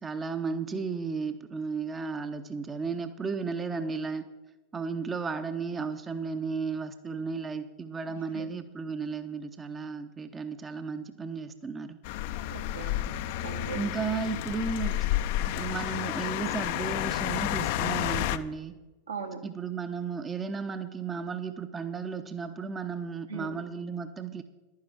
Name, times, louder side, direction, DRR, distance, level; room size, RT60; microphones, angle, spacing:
voice 1, 0.0-4.3 4.7-12.0 13.7-15.0 15.5-18.8 19.4-24.4, right 5 dB, 20° right, 9 dB, 0.6 m, -34 dB
voice 2, 8.1-8.6 12.5-13.1 13.4-13.8 19.1-19.4 23.3-23.6, right 5 dB, 70° right, 4 dB, 1.3 m, -39 dB
sound 1, 12.0-18.4, left 13 dB, 50° left, 0.5 m, -30 dB
11.5 x 9.5 x 5.7 m, 1.2 s
figure-of-eight pair, 90°, 0 cm